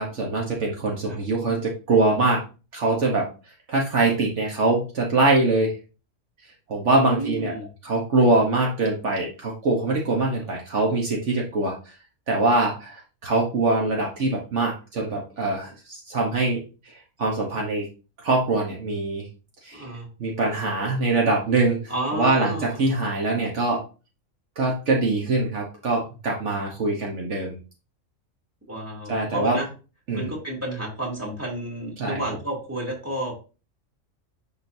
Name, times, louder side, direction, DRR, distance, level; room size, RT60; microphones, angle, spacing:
voice 1, 0.0-2.4 2.7-3.3 3.7-5.7 6.7-7.5 7.8-11.7 12.3-16.6 17.2-17.8 18.2-19.3 19.6-19.8 20.2-23.8 24.6-27.5 29.1-29.6 30.1-30.3 32.0-32.2, right 2 dB, 65° right, -1 dB, 1.4 m, -23 dB
voice 2, 6.9-7.7 10.5-10.6 19.7-20.1 21.9-22.8 28.7-29.7 30.1-33.3, right 1 dB, 10° right, -4 dB, 2.6 m, -31 dB
10.5 x 3.9 x 2.7 m, 0.32 s
omnidirectional pair, 1.3 m